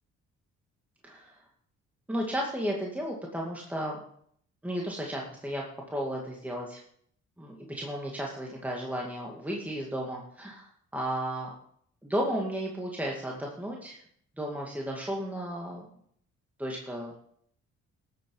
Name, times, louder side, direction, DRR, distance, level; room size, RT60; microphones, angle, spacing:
voice 1, 1.0-1.4 2.1-4.0 4.6-5.6 5.9-6.8 7.4-11.5 12.0-14.0 14.4-15.9 16.6-17.1, equal, 5° right, -2 dB, 2.2 m, -34 dB
13.0 x 7.9 x 5.5 m, 0.64 s
cardioid pair, 90°, 30 cm